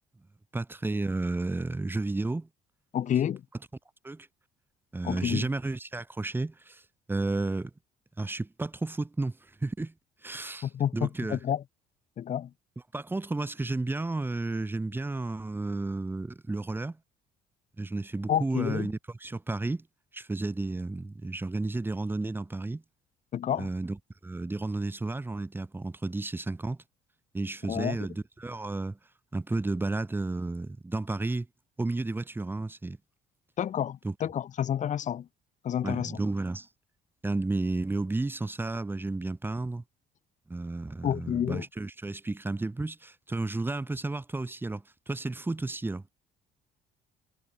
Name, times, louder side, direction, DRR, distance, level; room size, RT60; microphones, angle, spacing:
voice 1, 0.5-2.5 4.0-4.3 4.9-6.8 7.1-7.7 8.2-9.9 10.2-11.4 12.9-17.0 17.8-19.8 20.1-22.8 23.6-24.0 24.2-26.8 27.3-29.0 29.3-31.5 31.8-33.0 34.0-34.1 35.8-36.7 37.2-39.8 40.5-46.0, right 2 dB, 10° right, 1.4 m, -32 dB
voice 2, 2.9-3.4 5.0-5.5 10.6-11.6 12.2-12.5 18.3-18.9 23.3-23.7 27.7-28.0 33.6-35.3 35.6-36.2 41.0-41.6, left 9 dB, 45° left, 1.2 m, -29 dB
cardioid pair, 110°, 17 cm